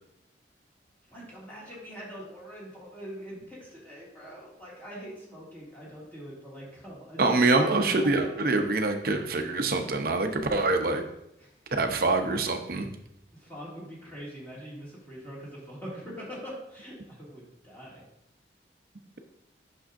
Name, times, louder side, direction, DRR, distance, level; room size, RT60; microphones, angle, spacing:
voice 1, 1.1-8.5 11.4-11.5 13.3-18.0, equal, 10° left, -7 dB, 2.3 m, -43 dB
voice 2, 7.2-11.0 11.7-12.9, right 3 dB, 55° right, 5 dB, 0.7 m, -25 dB
8.7 x 6.1 x 2.6 m, 0.82 s
head